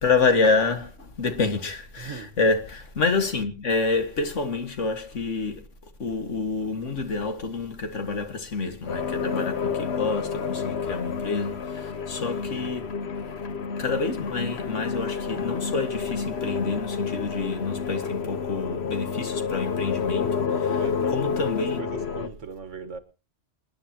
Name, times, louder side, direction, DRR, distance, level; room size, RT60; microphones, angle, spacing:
voice 1, 0.0-5.6 6.0-12.9 13.8-21.8, left 4 dB, 80° left, 2.1 m, -27 dB
voice 2, 2.0-2.4 20.7-23.0, right 5 dB, 80° right, 1.8 m, -39 dB
sound 1, 8.9-22.3, left 6 dB, 60° left, 1.3 m, -29 dB
28.0 x 10.0 x 2.9 m
omnidirectional pair, 1.2 m